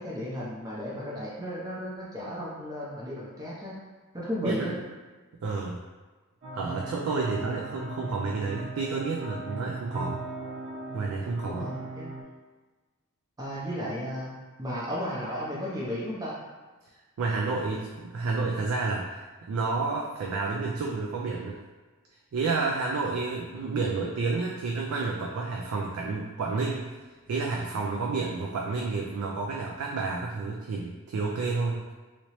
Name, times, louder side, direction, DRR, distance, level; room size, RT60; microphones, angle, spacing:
voice 1, 0.0-3.8 4.1-4.8 11.4-12.1 13.4-14.3 14.6-16.4, equal, 15° right, -6 dB, 0.5 m, -34 dB
voice 2, 5.4-5.8 6.5-10.2 10.9-11.7 17.2-19.2 19.5-21.6 22.3-26.9 27.3-31.8, right 3 dB, 75° right, -1 dB, 0.3 m, -30 dB
sound 1, 6.4-12.2, right 2 dB, 50° right, 0.8 m, -38 dB
3.0 x 2.8 x 3.0 m, 1.3 s
head